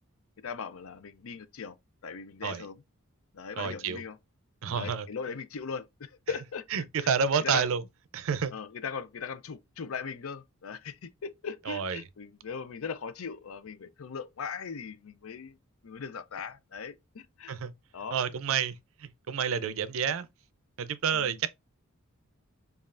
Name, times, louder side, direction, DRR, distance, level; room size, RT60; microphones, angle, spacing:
voice 1, 0.4-1.8 2.0-2.8 3.3-4.2 4.7-6.8 7.4-7.7 8.5-15.6 15.8-17.5 17.9-18.2 19.6-19.8 21.1-21.3, left 6 dB, 70° left, 0.5 m, -39 dB
voice 2, 3.6-4.0 4.6-5.1 6.7-7.8 8.1-8.5 11.7-12.0 17.5-17.7 18.1-20.3 20.8-21.6, right 6 dB, 65° right, 0.4 m, -29 dB
5.3 x 2.4 x 2.4 m
head